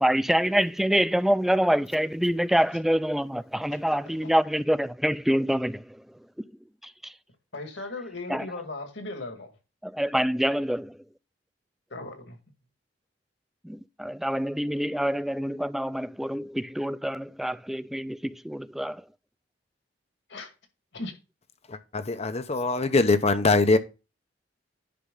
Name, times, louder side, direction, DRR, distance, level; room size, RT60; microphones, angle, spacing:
voice 1, 0.0-5.8 7.0-7.1 8.3-8.5 9.8-11.0 13.6-19.0, equal, ahead, 0.3 m, -26 dB
voice 2, 7.5-9.5 11.9-12.4 20.3-20.5 20.9-21.1, left 2 dB, 90° left, 2.0 m, -37 dB
voice 3, 21.7-23.8, left 3 dB, 35° left, 0.7 m, -22 dB
10.0 x 5.4 x 3.8 m
head